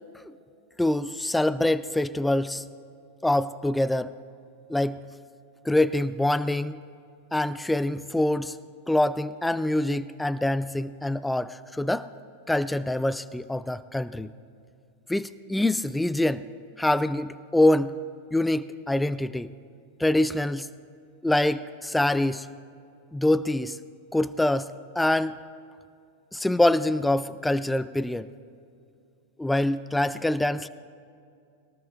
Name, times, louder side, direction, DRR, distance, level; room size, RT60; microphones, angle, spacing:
voice 1, 0.8-2.6 3.2-4.1 4.7-5.0 5.7-6.8 7.3-8.6 8.9-12.1 12.5-14.3 15.1-16.4 16.8-17.9 18.3-19.5 20.0-20.7 21.2-22.5 23.1-23.8 24.1-24.7 25.0-25.4 26.3-28.3 29.4-30.7, left 1 dB, 5° left, 16 dB, 0.3 m, -25 dB
23.0 x 18.5 x 2.4 m, 2.5 s
figure-of-eight pair, 90°, 0 cm